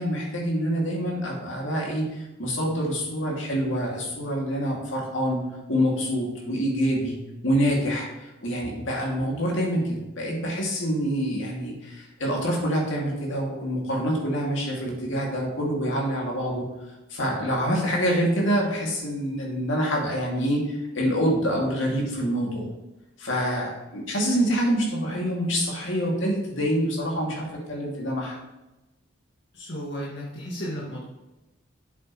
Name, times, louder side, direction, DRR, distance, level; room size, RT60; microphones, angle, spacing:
voice 1, 0.0-5.4 5.7-7.2 7.4-9.8 10.2-16.7 17.1-22.6 23.2-28.4, equal, 75° left, -2 dB, 2.4 m, -26 dB
voice 2, 29.5-31.0, equal, 60° left, -6 dB, 1.8 m, -34 dB
8.1 x 7.3 x 3.1 m, 1.0 s
head